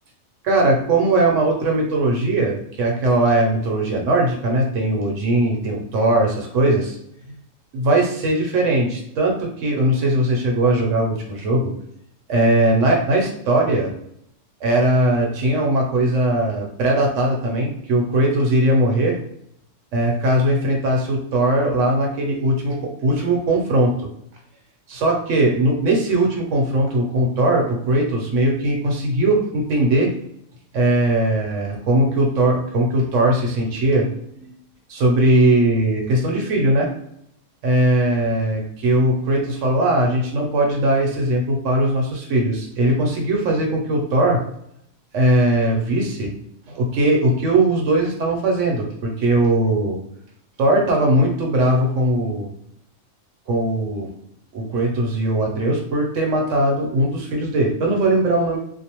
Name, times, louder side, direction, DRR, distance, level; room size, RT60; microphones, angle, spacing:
voice 1, 0.4-7.0 7.7-11.7 12.3-13.9 14.6-19.2 19.9-23.9 24.9-30.1 30.7-34.1 34.4-34.5 34.9-36.9 37.6-44.4 45.1-46.3 46.7-50.0 50.6-52.5 53.5-54.1 54.5-58.6, right 1 dB, 70° right, 0 dB, 1.0 m, -19 dB
2.6 x 2.1 x 2.9 m, 0.73 s
omnidirectional pair, 1.4 m